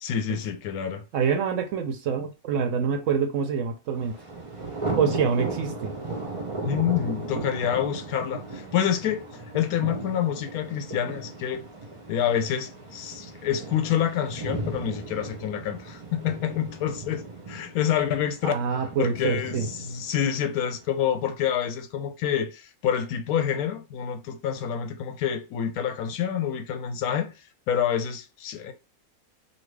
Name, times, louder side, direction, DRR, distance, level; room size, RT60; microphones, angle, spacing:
voice 1, 0.0-1.0 6.6-11.6 12.1-18.5 19.0-27.3 27.7-28.7, left 9 dB, 80° left, 1.1 m, -27 dB
voice 2, 1.1-4.1 5.0-5.9 18.4-19.7, right 6 dB, 70° right, 0.8 m, -26 dB
Thunder, 4.0-20.9, right 2 dB, 40° right, 0.5 m, -36 dB
2.7 x 2.6 x 3.2 m
omnidirectional pair, 1.6 m